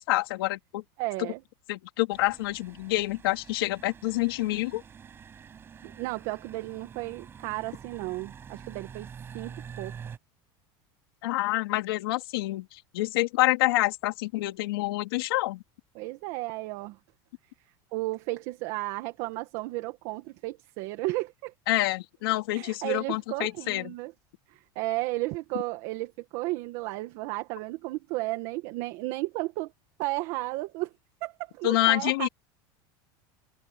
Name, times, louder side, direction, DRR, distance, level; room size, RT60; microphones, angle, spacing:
voice 1, 0.0-0.8 1.7-4.8 11.2-15.6 21.7-23.9 31.6-32.3, left 19 dB, 80° left, 3.6 m, -27 dB
voice 2, 1.0-1.4 5.8-9.1 9.3-10.0 15.9-17.0 17.9-21.5 22.5-24.1 24.5-29.7 30.0-30.9 31.2-32.3, right 20 dB, 50° right, 1.9 m, -33 dB
sound 1, 2.1-10.2, right 7 dB, 20° right, 7.7 m, -46 dB
supercardioid pair, 165°, 12 cm